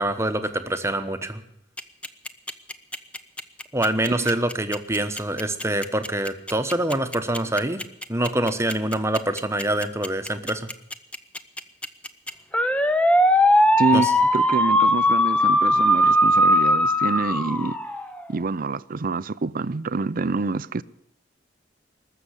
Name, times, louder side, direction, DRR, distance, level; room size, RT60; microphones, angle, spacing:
voice 1, 0.0-1.4 3.7-7.8 8.1-10.7 13.9-14.1, right 1 dB, 15° right, 1.1 m, -25 dB
sound 1, 1.8-18.2, equal, 5° left, 0.7 m, -20 dB
voice 2, 4.1-4.4 13.8-14.1 14.3-17.8 18.3-20.8, right 3 dB, 50° right, 0.6 m, -26 dB
20.5 x 6.9 x 9.9 m
head